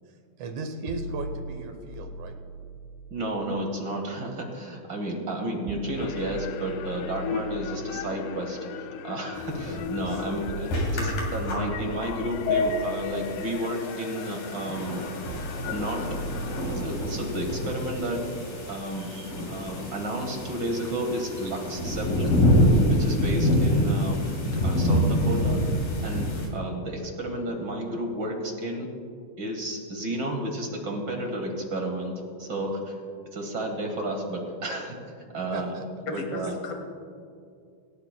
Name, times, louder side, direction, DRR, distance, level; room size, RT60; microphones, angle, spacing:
voice 1, 0.4-2.4 19.0-19.3 21.4-21.5 35.5-35.9, right 3 dB, 70° right, 6 dB, 1.9 m, -36 dB
sound 1, 0.9-4.9 5.7-19.7, right 2 dB, 90° right, 2.6 m, -41 dB
voice 2, 3.1-15.0 15.7-16.0 16.8-18.2 18.7-19.1 19.5-22.4 22.9-24.3 24.6-25.6 26.0-26.2 26.5-28.9 29.4-32.1 32.4-33.0 33.3-35.0 35.3-35.7 36.1-36.5, right 1 dB, 50° right, 1 dB, 1.4 m, -32 dB
sound 2, 6.0-16.6, left 6 dB, 80° left, 2.1 m, -35 dB
sound 3, 9.4-26.5, equal, 65° left, 4.4 m, -27 dB
voice 3, 36.1-36.7, left 2 dB, 40° left, 1 dB, 2.7 m, -35 dB
27.0 x 13.0 x 2.2 m, 2.3 s
omnidirectional pair, 4.2 m